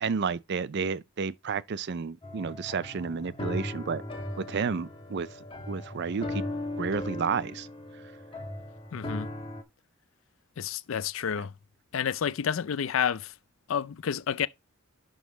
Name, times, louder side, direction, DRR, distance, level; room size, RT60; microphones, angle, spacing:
voice 1, 0.0-4.0 4.4-5.3 5.7-6.5 6.8-7.7, right 5 dB, 55° right, 0.5 m, -31 dB
sound 1, 2.2-9.6, left 1 dB, 25° left, 1.2 m, -37 dB
voice 2, 8.9-9.3 10.6-11.5 11.9-13.3 13.7-14.5, left 8 dB, 65° left, 0.4 m, -29 dB
11.0 x 3.8 x 3.9 m
head